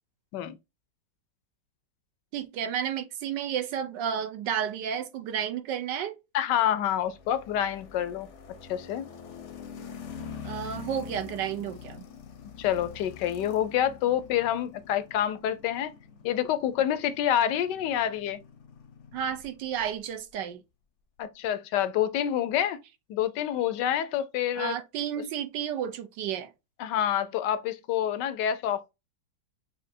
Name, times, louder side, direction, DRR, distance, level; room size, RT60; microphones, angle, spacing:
voice 1, 2.3-6.2 10.4-12.0 19.1-20.6 24.6-26.5, right 9 dB, 75° right, 1.3 m, -32 dB
voice 2, 6.3-9.1 12.6-15.9 16.2-18.4 21.2-22.8 23.1-24.7 26.8-28.9, left 10 dB, 75° left, 1.2 m, -27 dB
sound 1, 6.8-19.9, left 7 dB, 55° left, 0.8 m, -45 dB
6.5 x 2.7 x 2.6 m
omnidirectional pair, 2.1 m